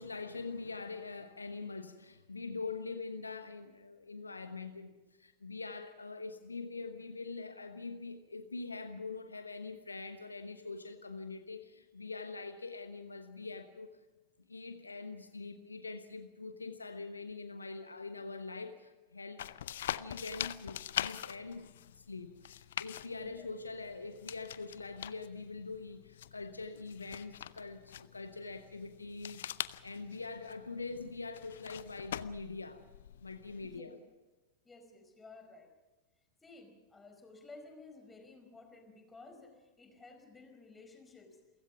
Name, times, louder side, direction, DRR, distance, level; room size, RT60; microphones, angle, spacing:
voice 1, 0.0-13.9 14.5-21.7 22.0-32.8 33.2-33.9, left 3 dB, 80° left, 9 dB, 1.1 m, -44 dB
sound 1, 19.4-33.8, left 11 dB, 60° left, 0.6 m, -44 dB
voice 2, 23.1-23.5 33.6-33.9 34.6-35.7 36.4-41.4, left 3 dB, 10° left, 4 dB, 4.8 m, -54 dB
29.0 x 16.0 x 6.0 m, 1.2 s
figure-of-eight pair, 90°, 0 cm